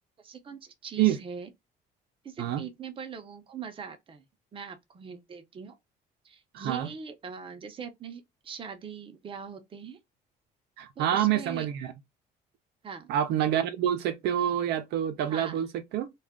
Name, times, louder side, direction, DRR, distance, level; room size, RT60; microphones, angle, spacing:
voice 1, 0.2-1.5 2.2-4.2 4.5-5.7 6.2-10.0 11.0-11.7 12.8-13.1 15.3-15.7, right 6 dB, 30° right, 0.7 m, -41 dB
voice 2, 6.5-6.9 10.8-11.9 13.1-15.7 15.9-16.1, right 11 dB, 80° right, 0.5 m, -27 dB
2.3 x 2.3 x 3.5 m
cardioid pair, 110°, 17 cm